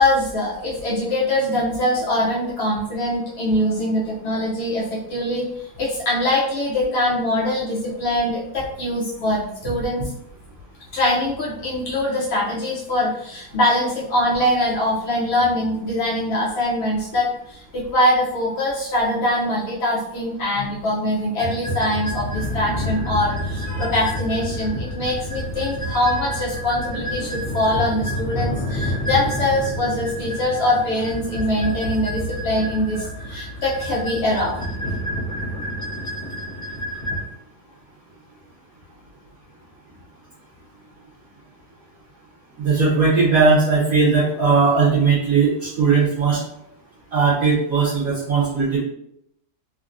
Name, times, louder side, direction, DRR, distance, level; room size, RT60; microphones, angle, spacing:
voice 1, 0.0-10.0 10.9-34.6 37.0-37.1, left 1 dB, 80° left, -5 dB, 0.5 m, -23 dB
sound 1, 21.4-37.2, equal, 45° left, 0.7 m, -28 dB
voice 2, 42.6-46.4 47.1-48.8, right 4 dB, 60° right, -7 dB, 1.1 m, -18 dB
3.4 x 2.2 x 2.5 m, 0.76 s
omnidirectional pair, 1.8 m